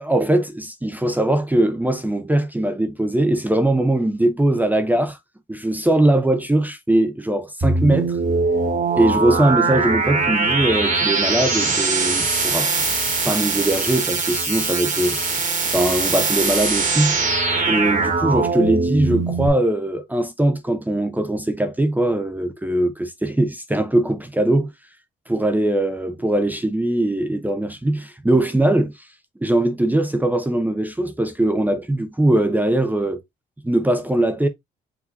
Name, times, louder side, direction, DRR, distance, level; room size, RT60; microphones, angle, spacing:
voice 1, 0.0-5.2 5.5-8.2 8.9-12.7 13.2-15.4 15.7-17.4 17.7-24.7 25.3-28.9 29.4-33.2 33.6-34.5, right 1 dB, 10° right, 0.8 m, -21 dB
sound 1, 7.6-19.5, right 3 dB, 40° right, 1.6 m, -21 dB
5.1 x 2.6 x 4.0 m
cardioid pair, 90°, 20 cm